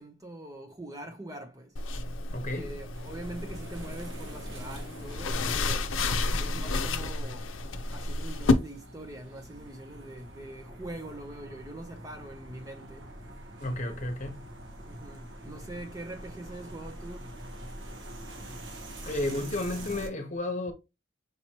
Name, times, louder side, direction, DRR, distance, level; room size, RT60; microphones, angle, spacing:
voice 1, 0.0-1.9 2.5-6.0 6.4-7.5 7.9-13.1 14.8-17.3, right 1 dB, 20° right, 0.6 m, -43 dB
sound 1, 1.8-8.5, left 3 dB, 85° left, 0.6 m, -31 dB
voice 2, 2.3-2.7 13.6-14.5 19.0-20.7, left 1 dB, 40° left, 1.0 m, -32 dB
sound 2, 2.9-20.1, right 1 dB, 65° right, 1.2 m, -45 dB
5.3 x 2.9 x 2.9 m
head